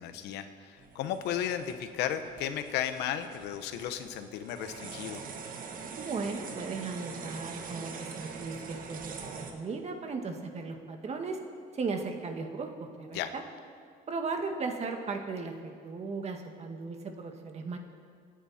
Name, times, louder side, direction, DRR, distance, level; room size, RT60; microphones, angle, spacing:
voice 1, 0.0-5.2 13.1-13.3, left 10 dB, 90° left, 9 dB, 1.1 m, -34 dB
sound 1, 0.8-9.5, right 5 dB, 55° right, 1.8 m, -44 dB
voice 2, 6.0-11.4 11.7-13.4 14.1-17.8, right 4 dB, 40° right, 4 dB, 1.9 m, -36 dB
26.5 x 10.0 x 4.4 m, 2.1 s
cardioid pair, 110°, 17 cm